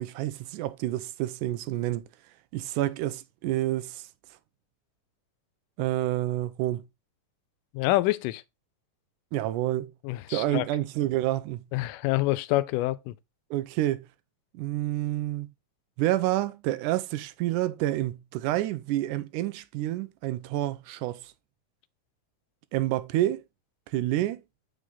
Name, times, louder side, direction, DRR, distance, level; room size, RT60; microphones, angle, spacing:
voice 1, 0.0-2.1 2.5-4.1 5.8-6.8 9.3-9.9 10.3-11.6 13.5-14.1 14.5-15.5 16.0-21.3 22.7-23.4 23.9-24.4, right 14 dB, 80° right, 2.1 m, -28 dB
voice 2, 7.7-8.4 10.0-10.7 11.7-13.1, left 17 dB, 90° left, 2.2 m, -26 dB
8.3 x 5.0 x 3.9 m
omnidirectional pair, 3.7 m